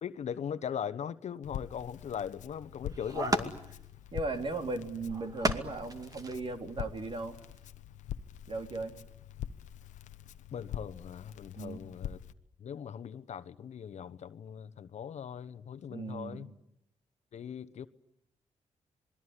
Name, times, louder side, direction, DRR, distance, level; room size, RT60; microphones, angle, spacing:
voice 1, 0.0-3.6 10.5-12.2 12.6-16.5 17.3-17.9, left 8 dB, 70° left, 1.1 m, -40 dB
Crackle, 1.4-12.3, left 10 dB, 85° left, 1.0 m, -44 dB
sound 1, 2.4-2.5 2.9-3.8 5.1-6.3 7.1-7.2 7.7-7.8, right 2 dB, 30° right, 2.4 m, -33 dB
voice 2, 4.1-7.4 8.5-8.9 11.6-11.8 15.9-16.5, right 3 dB, 45° right, 3.7 m, -37 dB
27.0 x 21.5 x 9.9 m
cardioid pair, 70°, 12 cm